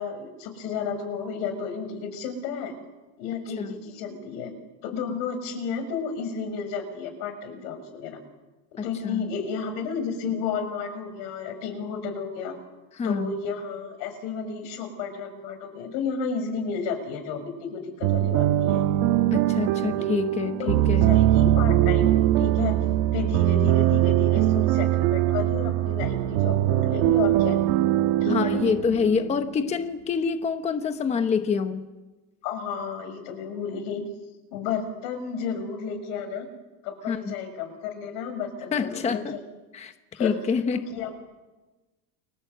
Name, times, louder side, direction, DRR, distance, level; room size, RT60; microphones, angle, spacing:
voice 1, 0.0-2.7 3.2-4.5 4.8-8.2 8.7-12.6 13.0-18.8 20.6-22.8 23.1-27.6 28.2-28.6 32.4-34.0 34.5-36.5 36.8-39.4 40.1-40.3 40.7-41.1, left 6 dB, 75° left, 7 dB, 6.4 m, -32 dB
voice 2, 8.8-9.3 12.9-13.3 19.3-21.2 28.3-31.9 37.1-37.3 38.7-39.4 39.7-39.9 40.2-40.8, left 5 dB, 15° left, 9 dB, 0.9 m, -26 dB
sound 1, 18.0-29.7, right 13 dB, 65° right, 1.6 m, -22 dB
29.5 x 23.5 x 8.1 m, 1.2 s
cardioid pair, 170°, 44 cm